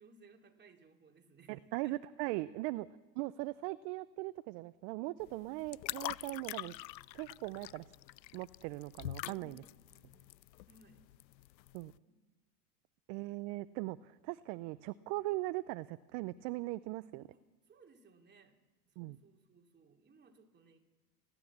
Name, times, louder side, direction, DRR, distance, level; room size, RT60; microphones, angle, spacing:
voice 1, 0.0-2.0 9.4-10.4 10.7-11.1 12.1-12.2 17.3-18.6 18.8-20.9, right 3 dB, 20° right, 2 dB, 2.9 m, -63 dB
voice 2, 1.5-2.9 3.2-6.7 7.1-7.9 8.3-9.6 11.7-11.9 13.1-17.3 19.0-19.2, right 19 dB, 45° right, 15 dB, 0.7 m, -39 dB
sound 1, 5.2-11.9, left 16 dB, 85° left, 0.5 m, -45 dB
30.0 x 12.0 x 7.2 m, 1.2 s
hypercardioid pair, 95°, 50 cm